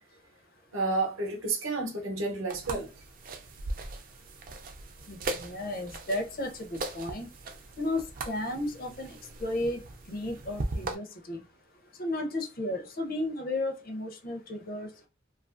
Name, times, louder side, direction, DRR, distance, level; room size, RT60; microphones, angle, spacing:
voice 1, 0.7-2.9, right 3 dB, 75° right, 0.7 m, -30 dB
sound 1, 2.5-11.0, right 2 dB, 40° right, 0.4 m, -39 dB
voice 2, 5.1-7.3 7.8-9.8 10.1-11.4 12.0-14.9, left 1 dB, 45° left, 0.5 m, -34 dB
2.7 x 2.4 x 2.4 m
head